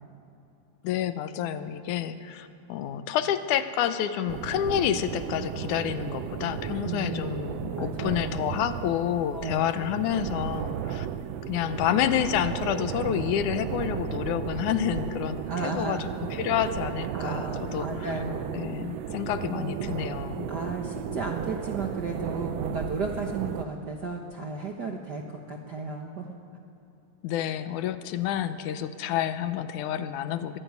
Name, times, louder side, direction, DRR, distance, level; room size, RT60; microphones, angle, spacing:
voice 1, 0.8-11.1 11.5-17.9 18.5-20.5 27.2-30.6, left 10 dB, 85° left, 11 dB, 2.3 m, -29 dB
sound 1, 4.3-23.6, right 9 dB, 70° right, 1.6 m, -34 dB
voice 2, 6.9-7.3 7.8-8.3 9.3-9.7 15.5-16.1 17.1-18.6 19.4-20.0 20.5-26.4, right 3 dB, 55° right, 2 dB, 1.2 m, -34 dB
23.5 x 12.0 x 9.5 m, 2.7 s
omnidirectional pair, 3.5 m